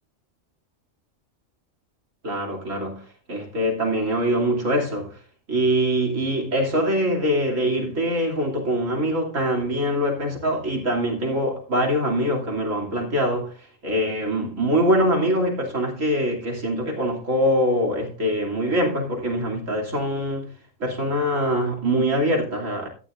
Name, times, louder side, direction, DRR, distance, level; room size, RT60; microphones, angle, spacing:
voice 1, 2.2-5.2 5.5-13.5 13.8-20.5 20.8-22.9, equal, 75° right, 3.3 m, -23 dB
14.0 x 9.9 x 2.5 m
omnidirectional pair, 1.3 m